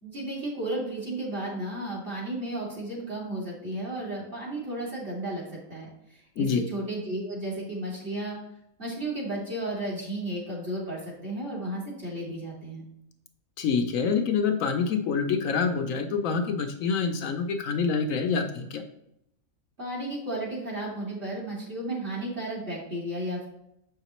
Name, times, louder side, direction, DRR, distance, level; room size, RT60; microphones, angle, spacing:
voice 1, 0.0-8.4 8.8-12.9 19.8-23.5, right 1 dB, 40° right, -4 dB, 2.5 m, -33 dB
voice 2, 13.6-18.8, left 5 dB, 75° left, 5 dB, 1.0 m, -26 dB
7.4 x 5.7 x 3.0 m, 0.80 s
omnidirectional pair, 1.5 m